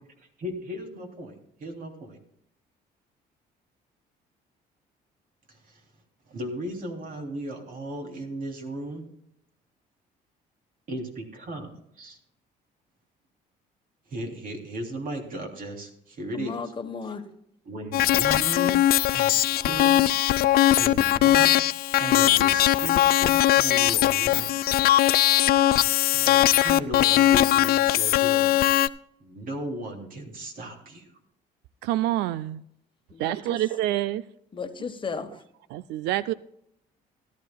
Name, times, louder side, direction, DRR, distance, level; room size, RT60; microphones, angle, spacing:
voice 1, 0.4-1.3 1.6-2.2 5.5-5.8 6.3-9.0 10.9-12.2 14.1-16.6 17.6-18.8 19.1-19.9 20.8-21.7 22.0-24.5 26.1-28.6 29.2-31.1, right 1 dB, 55° right, 2 dB, 3.1 m, -36 dB
voice 2, 16.3-17.2 33.1-33.6 34.5-35.4, left 5 dB, 30° left, 6 dB, 1.2 m, -35 dB
sound 1, 17.9-28.9, left 13 dB, 65° left, 0.4 m, -20 dB
voice 3, 31.8-32.6 33.2-34.2 35.7-36.3, right 14 dB, 85° right, 15 dB, 0.4 m, -27 dB
17.0 x 12.5 x 2.3 m, 0.74 s
cardioid pair, 110°, 17 cm